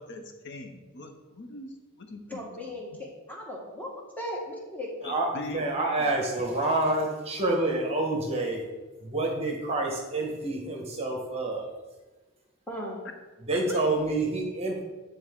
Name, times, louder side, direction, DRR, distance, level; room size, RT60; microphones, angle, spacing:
voice 1, 0.0-2.7 5.0-6.1 13.7-13.8, left 1 dB, 55° left, 5 dB, 0.8 m, -41 dB
voice 2, 2.3-3.9 4.2-4.9 12.7-13.0, left 1 dB, 10° left, -2 dB, 1.2 m, -37 dB
voice 3, 5.0-8.6 9.0-11.8 13.4-14.8, right 2 dB, 30° right, 0 dB, 1.1 m, -28 dB
9.6 x 3.6 x 3.6 m, 1.2 s
head